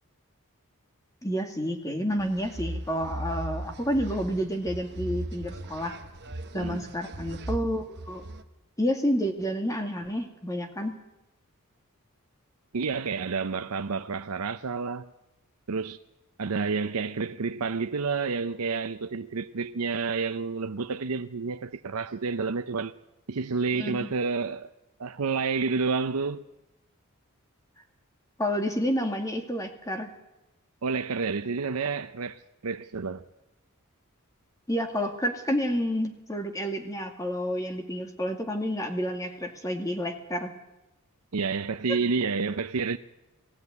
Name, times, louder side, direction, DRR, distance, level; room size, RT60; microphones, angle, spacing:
voice 1, 1.2-5.9 6.5-8.2 8.8-11.0 23.7-24.1 28.4-30.1 34.7-40.5, equal, 15° left, 2.1 m, -29 dB
sound 1, 2.2-8.4, right 1 dB, 50° right, 1.2 m, -37 dB
voice 2, 6.5-6.9 12.7-15.1 15.7-16.0 16.4-22.9 23.3-24.7 25.0-26.5 30.8-33.2 41.3-43.0, right 4 dB, 90° right, 0.7 m, -29 dB
19.5 x 15.5 x 9.6 m
head